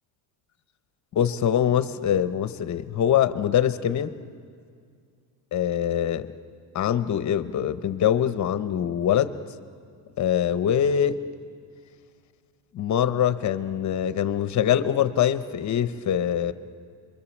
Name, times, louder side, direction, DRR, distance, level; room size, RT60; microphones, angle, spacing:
voice 1, 1.1-4.1 5.5-6.3 6.7-9.3 10.2-11.2 12.7-16.5, left 9 dB, 40° left, 11 dB, 0.9 m, -23 dB
30.0 x 23.5 x 7.2 m, 2.2 s
cardioid pair, 150°, 46 cm